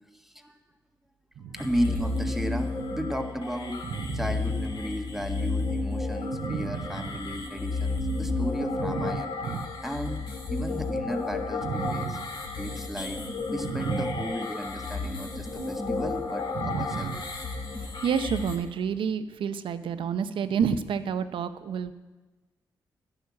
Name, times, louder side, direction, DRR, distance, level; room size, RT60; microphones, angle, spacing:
voice 1, 0.1-0.6 1.5-3.8 4.1-9.3 9.8-10.2 10.5-12.2 12.6-13.2 13.5-17.1, equal, 5° right, 5 dB, 1.5 m, -34 dB
sound 1, 1.6-18.6, left 3 dB, 60° left, 2.6 m, -32 dB
voice 2, 3.8-4.3 6.3-7.1 8.8-9.7 11.6-12.3 13.6-14.3 16.5-17.2 17.8-21.9, right 7 dB, 75° right, 11 dB, 0.8 m, -30 dB
11.5 x 10.0 x 7.4 m, 1.2 s
supercardioid pair, 55°, 9 cm